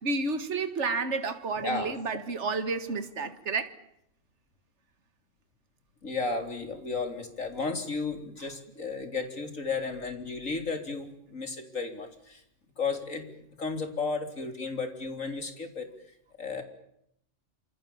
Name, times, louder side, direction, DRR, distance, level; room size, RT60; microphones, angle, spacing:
voice 1, 0.0-3.7, right 4 dB, 60° right, 2.1 m, -31 dB
voice 2, 1.6-2.0 6.0-12.4 12.8-13.2 13.6-15.9 16.4-16.6, left 4 dB, 85° left, 4.2 m, -33 dB
28.0 x 27.0 x 7.3 m
omnidirectional pair, 1.3 m